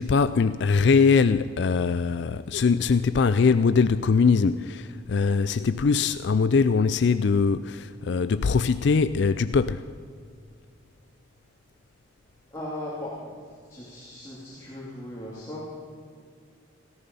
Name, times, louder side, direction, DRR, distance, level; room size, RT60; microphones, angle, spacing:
voice 1, 0.0-9.9, left 5 dB, 60° left, 0.4 m, -22 dB
voice 2, 12.5-13.3 13.7-15.8, left 1 dB, 15° left, 2.9 m, -37 dB
17.5 x 14.0 x 5.5 m
head